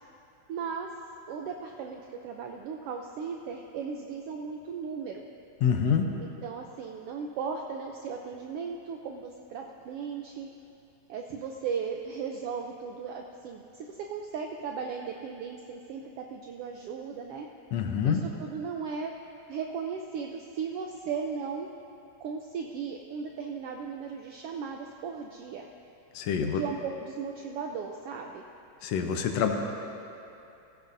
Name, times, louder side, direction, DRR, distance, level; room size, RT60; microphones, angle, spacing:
voice 1, 0.5-0.9 1.3-5.2 6.2-10.5 11.1-17.5 18.0-19.1 19.5-21.7 22.2-25.7 26.5-28.4, right 6 dB, 90° right, 2 dB, 1.3 m, -36 dB
voice 2, 5.6-6.1 17.7-18.2 26.2-26.6 28.8-29.5, left 7 dB, 75° left, 4 dB, 1.8 m, -26 dB
15.5 x 15.5 x 2.6 m, 2.8 s
omnidirectional pair, 3.3 m